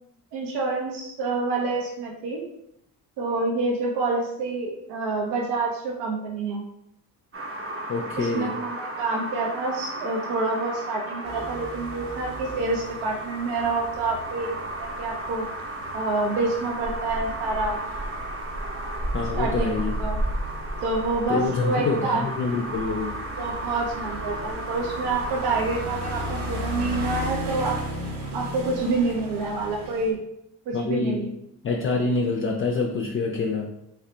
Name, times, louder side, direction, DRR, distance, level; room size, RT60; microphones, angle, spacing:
voice 1, 0.3-2.4 3.2-6.7 8.2-15.4 15.9-17.8 19.4-20.2 20.8-22.2 23.4-27.8 28.3-30.2 30.7-31.3, right 3 dB, 75° right, 0 dB, 0.7 m, -27 dB
sound 1, 7.3-27.3, right 2 dB, 35° right, 0.8 m, -35 dB
voice 2, 7.9-8.5 19.1-20.0 21.3-23.1 30.7-31.3 31.6-33.7, left 4 dB, 35° left, 2 dB, 0.4 m, -26 dB
sound 2, 11.2-30.1, equal, 55° right, 1.0 m, -34 dB
3.0 x 2.9 x 3.1 m, 0.79 s
supercardioid pair, 70°, 41 cm